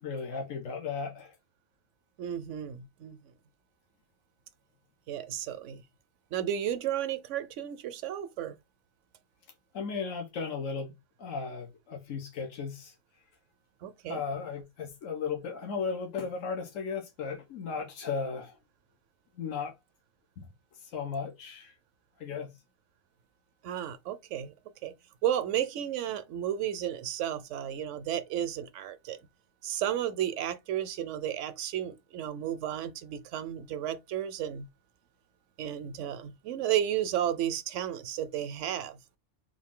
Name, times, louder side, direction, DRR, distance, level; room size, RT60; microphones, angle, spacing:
voice 1, 0.0-1.4 9.7-10.9 11.2-12.9 14.1-18.6 19.3-19.8 20.4-20.5 20.8-21.7 22.2-22.5, left 5 dB, 75° left, 1.4 m, -35 dB
voice 2, 2.2-3.2 5.1-5.8 6.3-8.6 13.8-14.2 23.6-24.5 24.8-24.9 25.2-29.2 29.6-34.7 35.6-39.0, right 10 dB, 75° right, 0.9 m, -33 dB
3.8 x 2.5 x 3.5 m
omnidirectional pair, 1.3 m